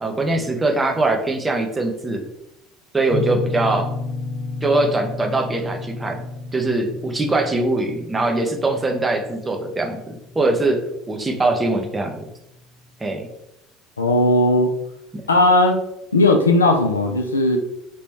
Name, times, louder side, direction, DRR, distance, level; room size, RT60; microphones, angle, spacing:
voice 1, 0.0-2.3 2.9-3.9 4.6-6.2 6.5-12.3 13.0-13.3 15.1-15.2, right 2 dB, 20° right, 4 dB, 0.7 m, -22 dB
sound 1, 3.1-11.8, left 3 dB, 30° left, 0.5 m, -32 dB
voice 2, 14.0-14.7 15.3-15.8 16.1-17.6, left 2 dB, 85° left, 4 dB, 0.4 m, -16 dB
3.0 x 3.0 x 3.4 m, 0.84 s
figure-of-eight pair, 65°, 0 cm